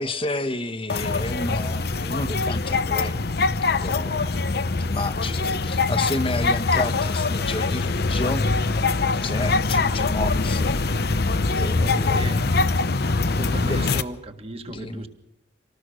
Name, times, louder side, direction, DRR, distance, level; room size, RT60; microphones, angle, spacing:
voice 1, 0.0-3.3 3.6-4.5 4.8-8.7 9.2-11.0 11.5-12.4 13.6-13.8 14.7-15.1, left 2 dB, 30° left, 9 dB, 1.3 m, -31 dB
sound 1, 0.9-14.0, left 3 dB, 60° left, 0.8 m, -23 dB
voice 2, 11.5-12.4 13.4-15.1, right 2 dB, 35° right, 7 dB, 1.8 m, -37 dB
26.0 x 19.0 x 6.4 m, 0.86 s
head